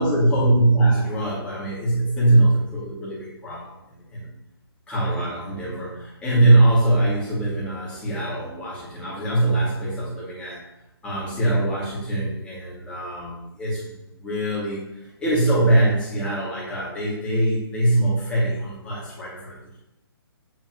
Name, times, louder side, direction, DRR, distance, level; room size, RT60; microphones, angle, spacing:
voice 1, 0.0-4.2 4.9-10.6 11.0-13.8 14.2-14.8 15.2-19.8, right 2 dB, 10° left, -7 dB, 2.2 m, -22 dB
7.6 x 4.1 x 3.0 m, 0.90 s
figure-of-eight pair, 140°, 13 cm